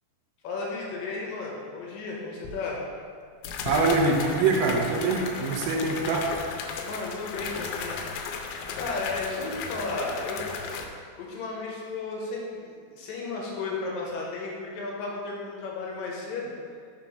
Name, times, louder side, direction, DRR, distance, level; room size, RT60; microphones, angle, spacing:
voice 1, 0.4-2.8 6.8-8.0 8.7-10.4 10.7-10.9 11.2-16.5, left 3 dB, 75° left, -3 dB, 2.4 m, -34 dB
sound 1, 2.4-2.5 3.4-10.9, left 5 dB, 90° left, 2.6 m, -35 dB
voice 2, 3.7-6.3, right 3 dB, 80° right, 0 dB, 2.3 m, -24 dB
6.0 x 4.4 x 5.2 m, 2.1 s
omnidirectional pair, 4.5 m